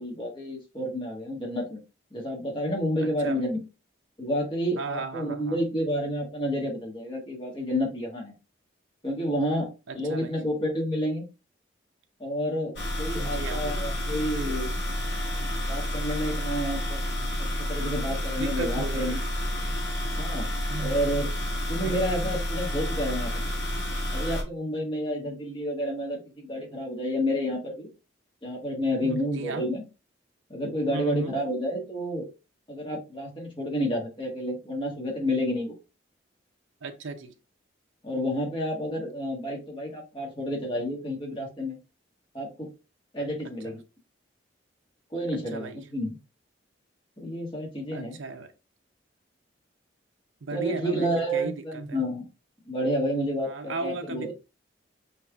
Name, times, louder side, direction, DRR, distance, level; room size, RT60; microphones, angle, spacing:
voice 1, 0.0-1.8 2.1-3.6 4.2-8.3 9.0-9.7 9.9-11.2 12.2-14.7 15.4-17.0 17.6-19.2 20.2-20.5 20.8-21.3 21.7-23.4 24.1-27.9 28.4-29.8 30.5-32.3 32.7-35.7 38.0-41.8 42.3-42.7 43.1-43.8 45.1-46.2 47.2-48.2 50.5-52.3 52.7-54.3, equal, 25° left, 1.5 m, -30 dB
voice 2, 3.0-3.5 4.8-5.6 9.9-10.4 13.2-13.8 18.4-19.2 20.7-21.1 21.7-22.0 29.0-29.7 30.9-31.3 36.8-37.3 43.6-43.7 45.3-45.8 47.9-48.5 50.4-52.0 53.4-54.3, right 3 dB, 85° right, 0.7 m, -36 dB
sound 1, 12.8-24.4, left 1 dB, 60° left, 1.8 m, -30 dB
5.9 x 3.1 x 2.3 m
head